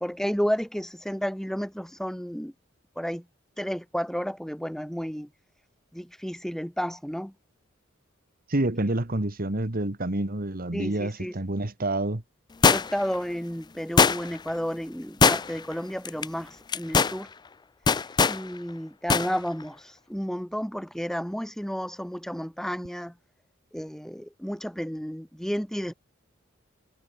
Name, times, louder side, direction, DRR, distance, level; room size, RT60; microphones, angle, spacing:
voice 1, 0.0-2.5 3.0-3.2 3.6-5.3 5.9-7.3 10.7-11.3 12.6-17.3 18.3-23.1 23.7-25.9, equal, ahead, 1.9 m, -32 dB
voice 2, 8.5-12.2, right 2 dB, 45° right, 1.8 m, -28 dB
sound 1, 12.6-13.1 14.0-14.5 15.2-15.7 16.1-16.3 16.7-17.2 17.9-18.4 19.1-19.3 19.6-19.7, left 5 dB, 20° left, 0.4 m, -20 dB
head